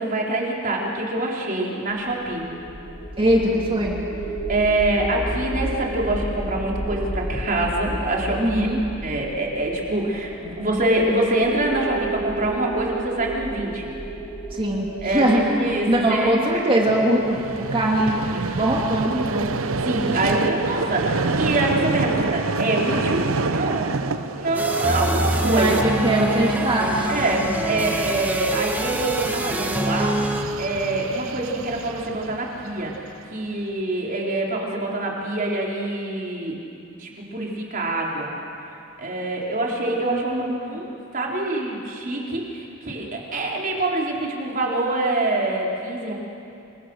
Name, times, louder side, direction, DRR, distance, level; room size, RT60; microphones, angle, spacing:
voice 1, 0.0-2.5 4.5-8.7 9.0-13.9 15.0-16.6 19.8-25.9 27.1-30.2 30.6-32.9 33.3-36.6 37.0-38.3 39.0-40.4 40.6-40.9 41.1-46.1, right 2 dB, 40° right, -2 dB, 4.3 m, -25 dB
sound 1, 1.9-17.0, right 1 dB, 5° left, 6.2 m, -32 dB
voice 2, 3.2-4.0 8.4-8.8 14.5-19.5 25.4-27.1 40.1-40.8, right 1 dB, 25° right, -2 dB, 2.7 m, -22 dB
Vehicle, 16.9-33.2, right 3 dB, 75° right, 0.9 m, -28 dB
sound 2, 24.5-30.4, right 1 dB, 10° right, 1.5 m, -26 dB
29.5 x 24.5 x 6.5 m, 2.6 s
head